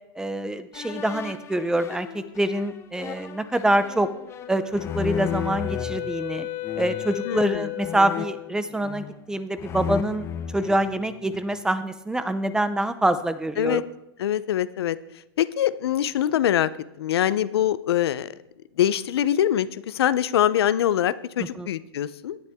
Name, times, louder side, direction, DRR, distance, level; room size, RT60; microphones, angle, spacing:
voice 1, 0.2-4.1 4.5-6.5 6.8-10.3 10.5-13.8 21.4-21.7, right 1 dB, 5° right, 13 dB, 0.6 m, -25 dB
sound 1, 0.7-6.0 6.6-7.1 7.8-9.2 9.6-11.5, left 8 dB, 20° left, 0.9 m, -34 dB
Wind instrument woodwind instrument, 4.4-8.4, left 16 dB, 55° left, 1.7 m, -34 dB
voice 2, 7.3-7.7 13.6-13.8 14.2-15.0 15.4-16.7 17.0-18.3 18.8-22.4, left 11 dB, 75° left, 16 dB, 0.6 m, -23 dB
17.5 x 10.5 x 3.6 m, 0.88 s
hypercardioid pair, 140°, 13 cm